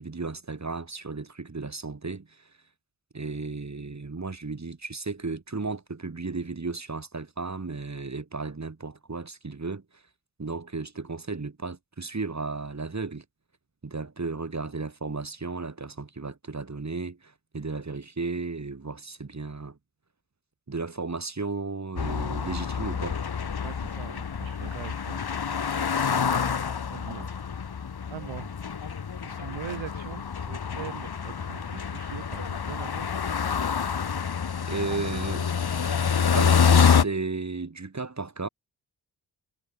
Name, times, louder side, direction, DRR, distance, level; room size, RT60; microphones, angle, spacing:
voice 1, 0.0-2.5 3.1-10.0 10.4-13.2 13.8-19.8 20.7-23.2 34.7-35.5 36.3-38.5, right 3 dB, 35° right, 4.2 m, -34 dB
sound 1, 22.0-37.0, left 6 dB, 55° left, 2.4 m, -27 dB
voice 2, 23.6-25.2 26.0-27.3 28.1-28.5 28.8-28.9 29.2-33.2, right 10 dB, 80° right, 2.5 m, -42 dB
supercardioid pair, 40°, 46 cm